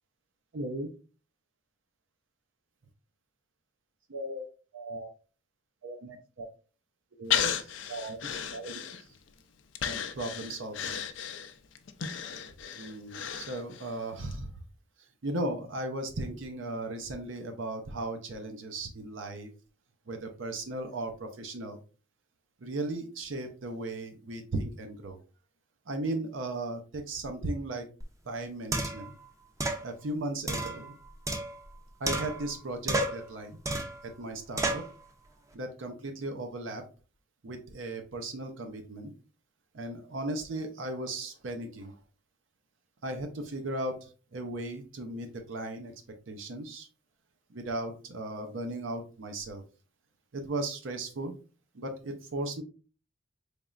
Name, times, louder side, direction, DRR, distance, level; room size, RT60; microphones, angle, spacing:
voice 1, 0.5-0.9 4.1-4.5 4.7-5.1 5.8-6.5 7.2-7.5 7.9-8.2 8.5-8.7 9.8-10.9 12.7-14.5 15.2-19.5 20.1-21.8 22.6-25.2 25.9-27.9 28.3-29.1 29.8-30.9 32.0-33.6 34.0-34.8 35.5-36.9 37.4-39.1 39.7-41.9 43.0-45.9 46.3-46.9 47.5-49.6 50.3-51.4 51.7-52.6, right 2 dB, 75° right, 5 dB, 0.6 m, -36 dB
Breathing, 7.3-9.3 9.8-13.9 14.3-14.4, left 8 dB, 70° left, 0.4 m, -34 dB
sound 1, 28.0-28.1 28.7-29.1 29.6-29.8 30.5-31.7 32.1-32.6 32.9-33.3 33.7-34.0 34.6-34.9, right 2 dB, 15° right, 0.5 m, -31 dB
4.1 x 3.4 x 2.4 m, 0.36 s
head